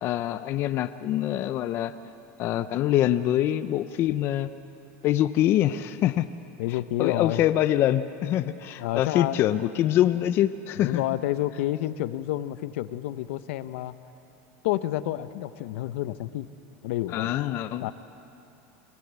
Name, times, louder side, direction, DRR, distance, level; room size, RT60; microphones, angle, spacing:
voice 1, 0.0-1.9 2.4-4.5 5.0-6.3 6.7-11.0 17.1-17.9, left 12 dB, 35° left, 10 dB, 0.5 m, -25 dB
voice 2, 6.6-7.4 8.8-9.4 10.8-13.9 14.6-16.5 16.8-17.3 17.8-17.9, left 14 dB, 70° left, 13 dB, 0.8 m, -29 dB
23.5 x 16.5 x 8.1 m, 2.8 s
supercardioid pair, 160°, 7 cm